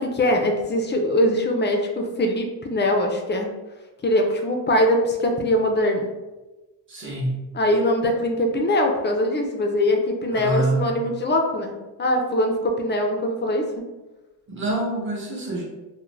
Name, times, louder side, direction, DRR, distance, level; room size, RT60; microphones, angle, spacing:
voice 1, 0.0-3.5 4.0-6.1 7.5-11.7 12.0-13.7, left 1 dB, 25° left, 3 dB, 0.3 m, -22 dB
voice 2, 6.9-7.5 10.3-11.1 14.5-15.6, right 2 dB, 25° right, -2 dB, 0.8 m, -26 dB
2.4 x 2.1 x 3.1 m, 1.1 s
cardioid pair, 100°, 45 cm